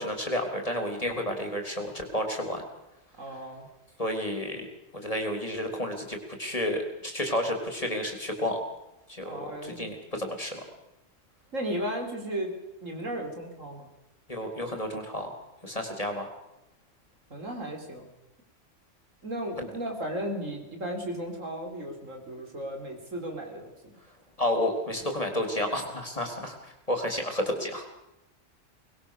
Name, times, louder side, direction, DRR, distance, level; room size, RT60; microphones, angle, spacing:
voice 1, 0.0-2.6 4.0-4.7 4.9-8.6 9.1-10.6 14.3-15.3 15.6-16.3 19.6-19.7 24.4-26.6 26.9-27.8, left 1 dB, 25° left, 4 dB, 3.9 m, -31 dB
voice 2, 3.2-3.7 9.2-9.9 11.5-12.6 12.8-13.9 17.3-18.1 19.2-23.7, right 1 dB, 80° right, 3 dB, 4.7 m, -35 dB
24.5 x 20.5 x 6.8 m, 0.92 s
omnidirectional pair, 1.3 m